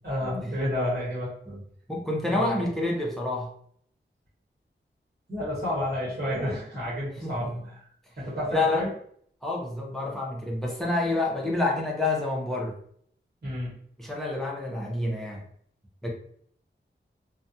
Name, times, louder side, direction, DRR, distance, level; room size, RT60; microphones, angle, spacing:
voice 1, 0.0-1.6 2.3-2.7 5.3-7.9 8.2-8.9 13.4-13.7, equal, 50° right, -8 dB, 1.1 m, -31 dB
voice 2, 1.9-3.5 7.2-7.6 8.5-8.9 9.4-12.8 14.0-15.5 16.0-16.1, left 2 dB, ahead, -1 dB, 0.7 m, -28 dB
2.3 x 2.2 x 2.7 m, 0.63 s
wide cardioid pair, 70°, 20 cm